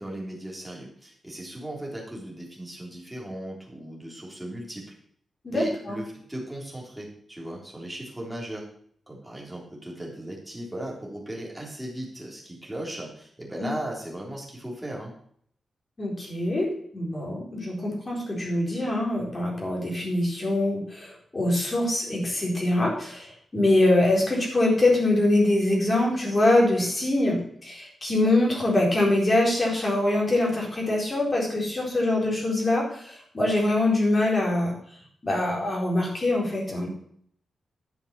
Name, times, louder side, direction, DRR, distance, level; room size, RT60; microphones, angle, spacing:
voice 1, 0.0-4.9 5.5-8.7 9.1-15.1, right 1 dB, 5° right, -3 dB, 3.6 m, -37 dB
voice 2, 5.4-6.0 13.6-13.7 16.0-34.7 35.2-36.9, left 1 dB, 25° left, -2 dB, 4.2 m, -24 dB
11.0 x 7.0 x 6.7 m, 0.63 s
wide cardioid pair, 145°, 0 cm